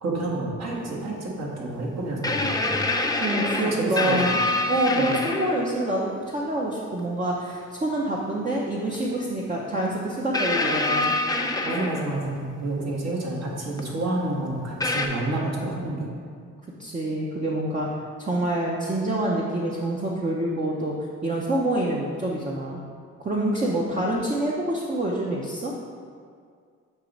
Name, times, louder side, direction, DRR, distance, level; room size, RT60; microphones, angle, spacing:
voice 1, 0.0-2.8 3.7-4.2 4.9-5.1 11.4-16.1, right 2 dB, 60° right, -3 dB, 1.6 m, -29 dB
sound 1, 0.7-0.8 2.2-5.7 7.0-7.1 8.9-9.0 10.3-12.4 13.8-13.9 14.8-15.1, left 2 dB, 15° left, 0.5 m, -26 dB
voice 2, 3.2-4.4 4.7-11.1 16.8-17.9 18.2-22.8 23.2-25.7, right 1 dB, 25° right, -3 dB, 0.7 m, -26 dB
7.2 x 3.0 x 5.2 m, 2.1 s
cardioid pair, 90°, 30 cm